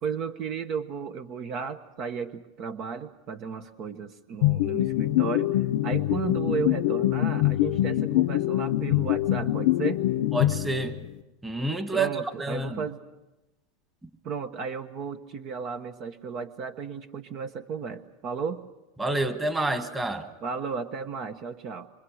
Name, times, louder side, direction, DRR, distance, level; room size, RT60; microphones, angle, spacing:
voice 1, 0.0-5.5 5.8-10.0 11.9-13.0 14.2-18.6 20.4-21.9, right 6 dB, 50° right, 8 dB, 1.2 m, -34 dB
sound 1, 4.4-11.1, left 15 dB, 70° left, 0.8 m, -24 dB
voice 2, 10.3-11.0 11.4-12.1 12.4-12.8 19.0-20.3, right 2 dB, 10° right, 8 dB, 1.8 m, -28 dB
26.0 x 25.0 x 6.5 m, 1.0 s
hypercardioid pair, 110°, 0 cm